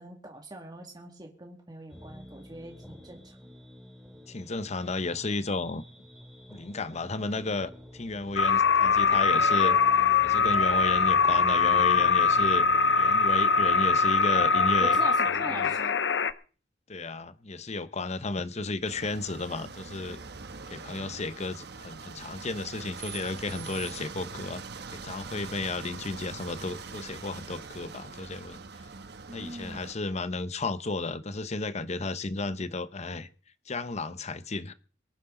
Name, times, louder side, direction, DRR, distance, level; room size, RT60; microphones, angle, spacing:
voice 1, 0.0-3.4 14.8-16.0 29.3-29.9, right 1 dB, 25° right, 2.2 m, -42 dB
sound 1, 1.9-15.2, equal, ahead, 2.5 m, -48 dB
voice 2, 4.3-5.8 6.5-9.8 10.2-12.6 13.0-15.0 15.5-15.7 16.9-20.2 20.7-24.6 24.9-28.6 29.3-33.3 33.7-34.7, left 3 dB, 40° left, 1.0 m, -33 dB
sound 2, 8.4-16.3, left 5 dB, 70° left, 0.7 m, -22 dB
sound 3, 18.8-29.9, right 5 dB, 65° right, 1.1 m, -43 dB
24.0 x 9.9 x 3.9 m
head